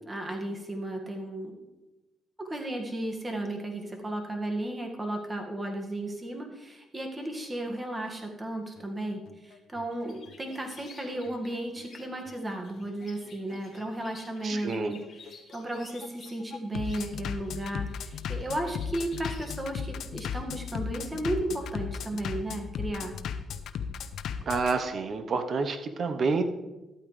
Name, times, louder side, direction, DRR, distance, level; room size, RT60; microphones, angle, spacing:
voice 1, 0.0-1.5 2.4-15.0 15.5-23.2, right 1 dB, 20° right, 2 dB, 1.9 m, -34 dB
Bass drum, 8.8-24.7, left 7 dB, 70° left, 0.7 m, -36 dB
sound 1, 9.9-19.5, left 5 dB, 45° left, 2.8 m, -53 dB
voice 2, 14.4-14.9 24.4-26.4, right 4 dB, 50° right, 8 dB, 1.0 m, -28 dB
13.0 x 8.9 x 3.3 m, 1.1 s
cardioid pair, 90°, 0 cm